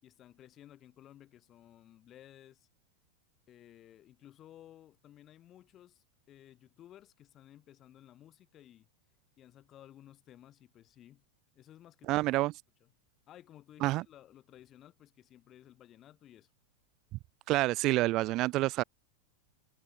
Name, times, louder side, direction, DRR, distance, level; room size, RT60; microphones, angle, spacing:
voice 1, 0.0-2.7 3.5-8.9 9.4-11.2 11.5-12.5 12.8-12.9 13.3-16.5, left 12 dB, 30° left, 6.3 m, -56 dB
voice 2, 12.1-12.5 13.8-14.0 17.5-18.8, right 18 dB, 40° right, 0.6 m, -28 dB
figure-of-eight pair, 90°, 0 cm